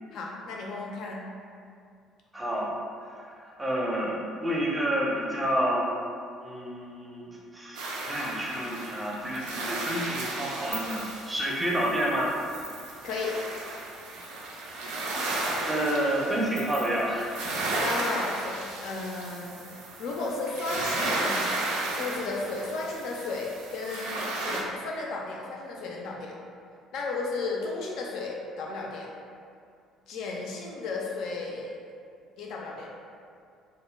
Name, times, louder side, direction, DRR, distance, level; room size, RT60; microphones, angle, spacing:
voice 1, 0.1-1.2 13.0-13.4 17.8-21.6 21.9-26.4 26.9-29.1 30.1-31.7 32.4-32.9, left 3 dB, 55° left, -2 dB, 0.4 m, -34 dB
voice 2, 2.3-2.7 3.0-5.9 6.4-12.3 15.7-17.3, equal, 15° right, -3 dB, 0.5 m, -29 dB
sound 1, 7.7-24.6, right 2 dB, 65° right, 0.3 m, -34 dB
sound 2, 9.2-9.8 10.1-14.4 14.7-14.8 15.0-18.8 19.1-19.2 19.5-21.5, right 1 dB, 85° right, 0.7 m, -45 dB
2.1 x 2.1 x 3.1 m, 2.3 s
figure-of-eight pair, 50°, 0 cm